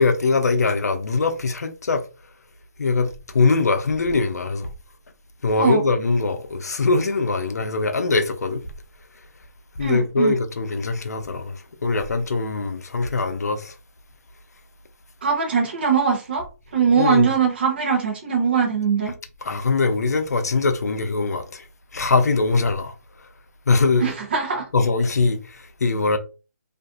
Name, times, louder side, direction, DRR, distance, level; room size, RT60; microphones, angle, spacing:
voice 1, 0.0-2.0 2.8-4.7 5.4-8.6 9.8-13.7 17.0-17.3 19.4-21.6 21.9-22.9 23.7-24.1 24.7-25.4 25.8-26.2, left 3 dB, 85° left, 0.5 m, -22 dB
voice 2, 9.8-10.3 15.2-16.4 16.7-19.1 24.0-24.7, right 6 dB, 40° right, 0.7 m, -21 dB
2.5 x 2.3 x 2.4 m
hypercardioid pair, 170°, 8 cm